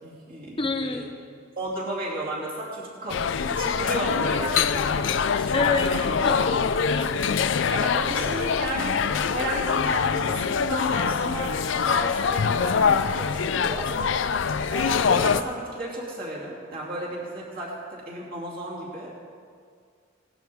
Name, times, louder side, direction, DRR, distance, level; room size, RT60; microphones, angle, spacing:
voice 1, 0.0-1.1 1.6-6.1 7.7-9.0 9.3-14.0 14.7-19.1, right 1 dB, 50° right, -5 dB, 2.9 m, -33 dB
voice 2, 0.6-1.1 5.5-5.9 6.2-7.1, left 3 dB, 25° left, 5 dB, 0.9 m, -27 dB
sound 1, 3.1-15.4, left 6 dB, 70° left, 0.4 m, -24 dB
18.5 x 12.0 x 3.5 m, 2.2 s
head